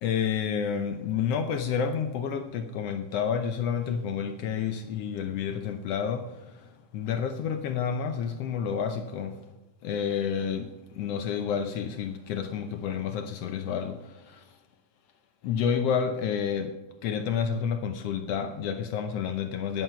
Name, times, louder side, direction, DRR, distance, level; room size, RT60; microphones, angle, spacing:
voice 1, 0.0-9.5 9.8-14.6 15.4-16.8 17.0-19.8, left 7 dB, 90° left, 1.3 m, -30 dB
12.5 x 11.0 x 5.7 m
omnidirectional pair, 3.8 m